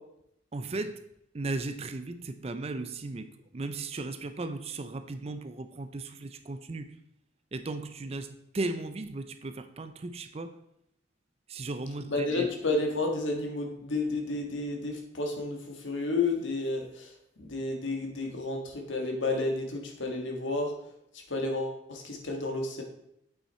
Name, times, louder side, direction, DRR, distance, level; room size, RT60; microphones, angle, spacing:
voice 1, 0.5-1.0 1.3-7.0 7.5-10.6 11.5-12.5, right 2 dB, 30° right, 10 dB, 0.5 m, -36 dB
voice 2, 12.1-17.1 17.4-20.7 21.3-22.8, left 2 dB, 75° left, 2 dB, 1.5 m, -31 dB
8.2 x 5.8 x 4.3 m, 0.77 s
head